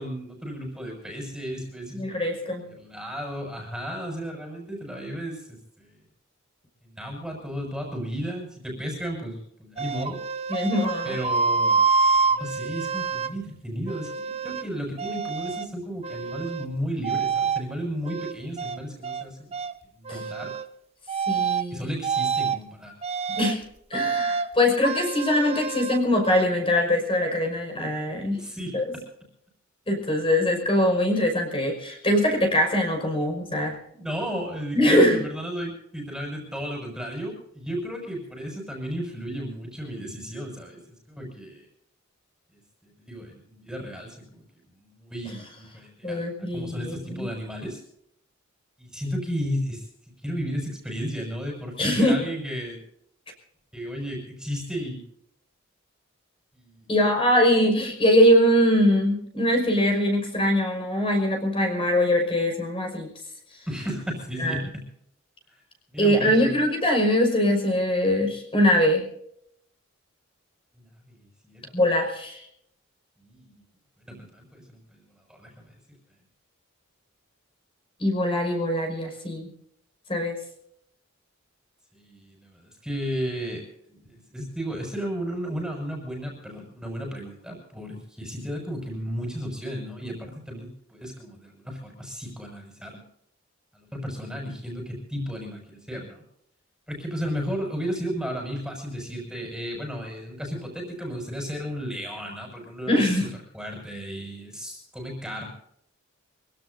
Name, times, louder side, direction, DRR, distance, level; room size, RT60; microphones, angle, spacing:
voice 1, 0.0-2.3 2.7-6.0 6.8-10.2 11.0-11.8 12.3-19.5 20.0-20.5 21.7-22.9 28.3-29.0 33.9-40.8 41.1-41.7 42.5-44.4 44.8-46.2 46.5-47.8 48.8-49.9 50.2-52.8 53.7-55.1 56.5-56.9 63.7-64.9 65.9-66.6 70.8-71.7 73.2-73.5 74.1-75.0 75.3-75.7 81.9-83.6 83.9-93.0 93.7-96.2 96.9-103.3 103.5-105.5, equal, 5° right, 1 dB, 6.0 m, -34 dB
voice 2, 1.9-2.6 10.5-11.2 20.1-20.2 21.3-21.9 23.3-23.6 23.9-28.4 28.7-28.8 29.9-33.8 34.7-35.2 46.0-47.3 51.8-52.2 56.9-63.1 64.4-64.6 66.0-69.1 71.7-72.5 78.0-79.5 80.1-80.4 102.9-103.3, left 1 dB, 25° left, 2 dB, 5.4 m, -22 dB
sound 1, 9.8-13.3 13.9-14.7 15.0-15.7 16.0-16.7 17.0-17.6 18.1-19.3 19.5-19.7 20.1-20.7 21.1-21.7 22.0-22.6 23.0-23.6 23.9-24.5 24.8-26.5, right 5 dB, 30° right, 0.8 m, -27 dB
25.0 x 17.0 x 2.7 m, 0.70 s
head